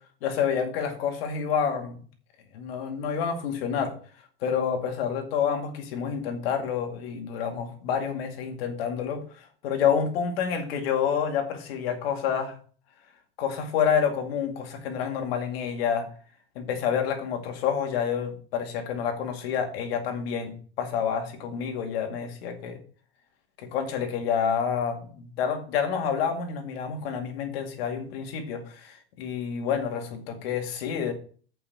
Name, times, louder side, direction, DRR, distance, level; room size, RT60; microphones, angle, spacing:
voice 1, 0.2-2.0 2.5-3.9 4.4-9.2 9.6-12.5 13.4-16.1 16.6-22.8 23.6-31.1, left 7 dB, 90° left, 4 dB, 2.2 m, -28 dB
7.2 x 5.6 x 6.8 m, 0.43 s
supercardioid pair, 130°, 29 cm